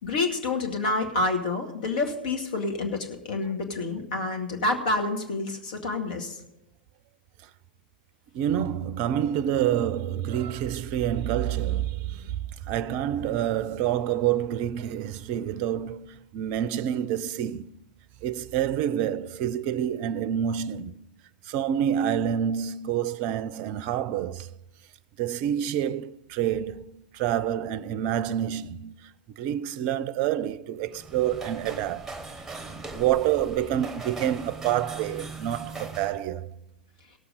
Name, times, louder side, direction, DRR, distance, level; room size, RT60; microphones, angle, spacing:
voice 1, 0.0-6.3, left 3 dB, 60° left, 2.0 m, -28 dB
voice 2, 8.3-17.7 18.2-21.0 21.5-24.5 25.2-29.0 29.4-32.1 32.6-36.5, right 10 dB, 45° right, 0.5 m, -28 dB
sound 1, 30.8-36.2, right 3 dB, 5° right, 1.3 m, -40 dB
17.5 x 7.1 x 5.1 m
figure-of-eight pair, 100°, 5 cm